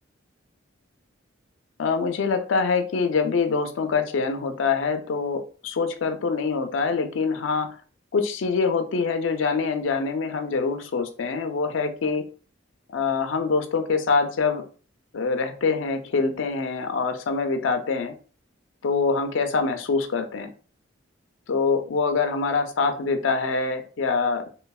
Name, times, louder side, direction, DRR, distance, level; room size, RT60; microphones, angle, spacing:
voice 1, 1.8-7.7 8.1-12.2 12.9-14.6 15.1-18.1 18.8-20.5 21.5-24.4, left 4 dB, 70° left, 7 dB, 0.4 m, -24 dB
3.1 x 2.0 x 2.3 m, 0.39 s
head